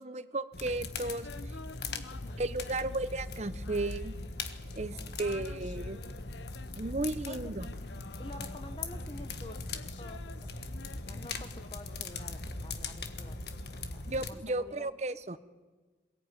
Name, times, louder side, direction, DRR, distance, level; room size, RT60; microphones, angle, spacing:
voice 1, 0.0-1.6 2.4-4.1 4.8-6.0 6.8-7.7 14.1-15.4, right 2 dB, 35° right, 13 dB, 0.8 m, -34 dB
sound 1, 0.5-14.3, left 3 dB, 65° left, 1.5 m, -40 dB
sound 2, 0.9-4.7 5.1-13.0, left 4 dB, 85° left, 0.7 m, -52 dB
voice 2, 1.9-2.4 4.9-5.2 7.3-7.4 8.2-9.6 10.0-13.4 13.7-15.2, left 1 dB, 30° left, 10 dB, 1.1 m, -50 dB
22.5 x 18.0 x 9.5 m, 1.3 s
head